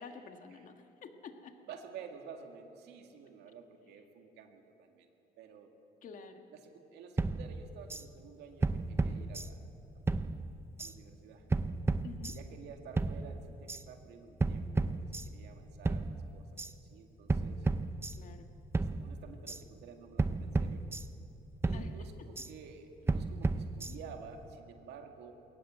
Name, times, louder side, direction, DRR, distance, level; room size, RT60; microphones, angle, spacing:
voice 1, 0.0-1.6 6.0-6.5 12.0-12.4 18.2-18.5 21.7-21.9, left 5 dB, 50° left, 6 dB, 1.7 m, -49 dB
voice 2, 1.6-5.1 5.4-5.7 6.5-9.6 9.9-10.2 10.8-11.4 12.3-14.9 15.3-17.7 18.7-20.8 21.6-25.3, right 6 dB, 80° right, 4 dB, 2.2 m, -51 dB
sound 1, 7.2-8.0 8.6-9.8 10.1-10.9 11.5-12.6 13.0-13.8 14.4-15.6 15.9-16.7 17.3-18.5 18.7-19.6 20.2-21.4 21.6-22.5 23.1-24.2, right 3 dB, 15° right, 0.6 m, -34 dB
21.5 x 18.5 x 7.7 m, 2.8 s
cardioid pair, 110°, 17 cm